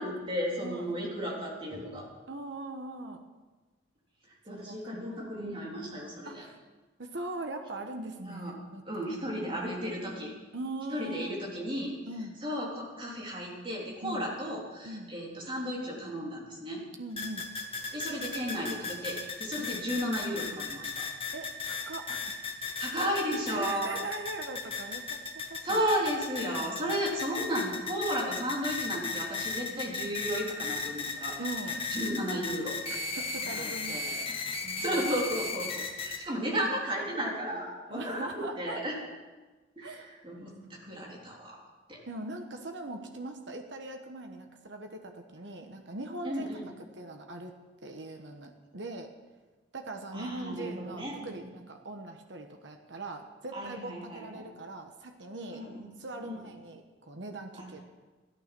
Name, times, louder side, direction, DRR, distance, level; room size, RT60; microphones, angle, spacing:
voice 1, 0.0-2.1 4.3-6.4 8.2-8.6 8.9-10.3 10.9-12.0 12.4-16.8 17.9-21.1 22.8-23.9 25.6-32.8 33.4-34.4 34.8-39.0 39.8-41.6 41.9-42.0 46.2-46.7 50.1-51.5 53.5-54.5 55.5-55.9 56.2-56.4 57.6-57.7, equal, 30° right, -3 dB, 3.6 m, -34 dB
voice 2, 2.3-3.2 4.5-5.2 6.2-6.6 7.0-8.8 9.3-9.4 10.5-11.3 12.1-12.4 14.0-14.3 14.8-15.1 17.0-17.5 19.6-19.7 21.3-22.4 23.5-25.2 25.5-25.8 31.4-31.8 32.9-34.3 34.6-35.2 36.6-36.7 37.9-38.8 39.8-40.1 40.9-41.0 42.1-46.5 47.0-47.5 47.8-49.1 49.7-55.6 56.0-57.8, right 2 dB, 70° right, 4 dB, 1.2 m, -41 dB
sound 1, 17.2-36.2, left 4 dB, 30° left, 1.6 m, -36 dB
14.0 x 12.5 x 6.1 m, 1.3 s
head